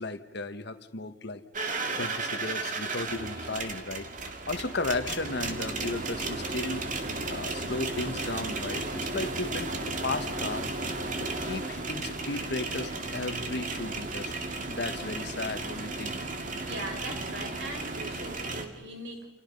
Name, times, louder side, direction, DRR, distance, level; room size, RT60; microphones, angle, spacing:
voice 1, 0.0-1.4 1.9-6.9 7.3-10.7 11.2-14.3 14.7-16.2, left 2 dB, 60° left, 1.5 m, -35 dB
sound 1, 1.5-18.7, right 3 dB, 45° right, 2.2 m, -34 dB
voice 2, 16.6-19.3, right 1 dB, 70° right, 6.1 m, -40 dB
29.0 x 29.0 x 5.4 m
head